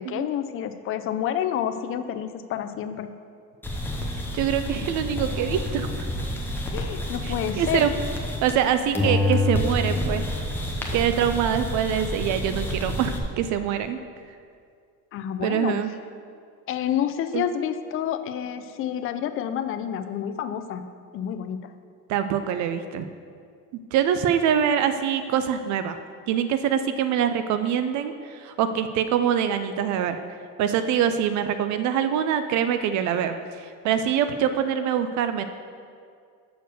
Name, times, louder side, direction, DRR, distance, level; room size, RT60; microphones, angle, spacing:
voice 1, 0.0-3.1 6.7-7.9 15.1-15.8 16.7-20.9 21.1-21.7, left 9 dB, 40° left, 10 dB, 0.4 m, -29 dB
sound 1, 3.6-8.7 8.9-13.2, left 1 dB, 5° left, 0.7 m, -28 dB
voice 2, 4.3-5.9 7.2-8.0 8.4-10.2 10.9-14.0 15.4-15.9 17.3-17.4 22.1-23.1 23.9-26.0 26.3-30.2 30.6-35.4, right 9 dB, 55° right, 10 dB, 0.4 m, -24 dB
6.5 x 4.5 x 6.5 m, 2.3 s
cardioid pair, 135°, 35 cm